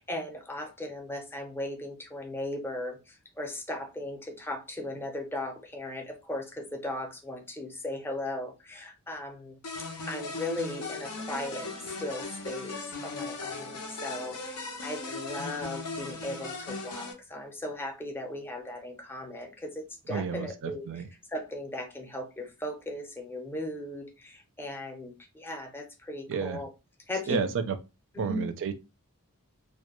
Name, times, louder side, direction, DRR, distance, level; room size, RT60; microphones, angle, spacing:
voice 1, 0.0-9.6 10.1-21.0 21.3-26.7 27.1-27.4 28.1-28.4, left 1 dB, 10° left, 0.5 m, -37 dB
sound 1, 9.6-17.1, left 3 dB, 90° left, 0.6 m, -38 dB
voice 2, 20.1-21.1 26.3-26.6 27.3-27.7 28.2-28.7, right 5 dB, 60° right, 0.4 m, -31 dB
2.2 x 2.2 x 2.9 m
head